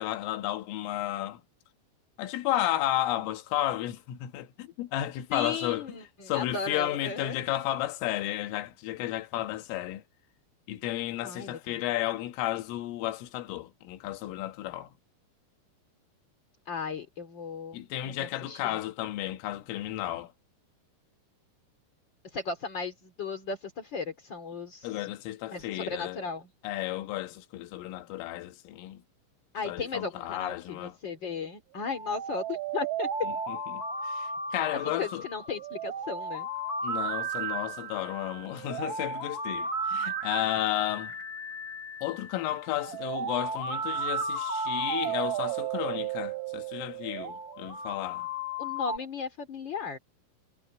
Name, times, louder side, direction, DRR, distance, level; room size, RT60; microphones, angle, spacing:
voice 1, 0.0-1.4 2.2-5.8 6.3-10.0 10.7-14.9 17.7-20.3 24.8-26.2 26.6-29.0 29.7-30.9 33.5-35.2 36.8-41.2 42.0-48.3, left 14 dB, 90° left, 4.0 m, -33 dB
voice 2, 5.3-7.4 11.2-11.8 16.7-17.8 18.1-18.7 22.2-25.1 25.5-26.5 29.5-33.3 34.8-36.5 48.6-50.0, left 5 dB, 30° left, 2.4 m, -36 dB
sound 1, 31.8-49.0, right 4 dB, 30° right, 3.5 m, -34 dB
omnidirectional pair, 5.7 m